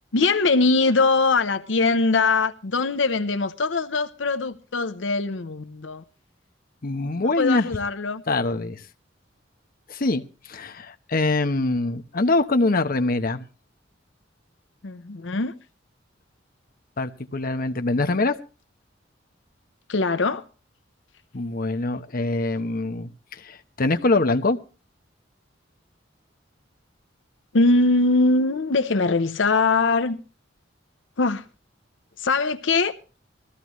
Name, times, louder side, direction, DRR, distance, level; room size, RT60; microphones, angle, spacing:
voice 1, 0.1-6.0 7.4-8.2 14.8-15.5 19.9-20.4 27.5-30.2 31.2-31.4 32.2-32.9, left 3 dB, 75° left, 0.8 m, -22 dB
voice 2, 6.8-7.7 8.3-8.8 9.9-13.5 17.0-18.4 21.3-24.6, left 2 dB, 50° left, 0.9 m, -24 dB
20.5 x 14.5 x 3.1 m
head